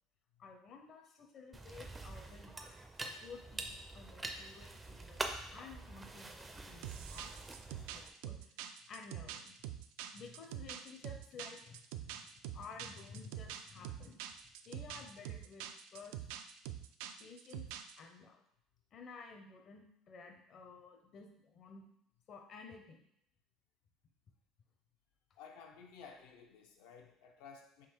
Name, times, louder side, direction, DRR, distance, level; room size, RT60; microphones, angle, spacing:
voice 1, 0.4-2.6 3.0-8.5 8.9-9.5 10.1-14.2 14.7-15.7 15.9-16.3 17.2-17.7 18.0-18.4 18.9-21.8 22.3-23.0, left 5 dB, 40° left, 2 dB, 0.6 m, -53 dB
sound 1, 1.5-8.1, right 2 dB, 15° right, 0.4 m, -45 dB
sound 2, 6.8-18.0, right 11 dB, 85° right, 0.3 m, -45 dB
voice 2, 25.4-27.9, left 6 dB, 85° left, 2 dB, 0.7 m, -55 dB
3.7 x 2.8 x 4.5 m, 0.70 s
cardioid pair, 150°, 0 cm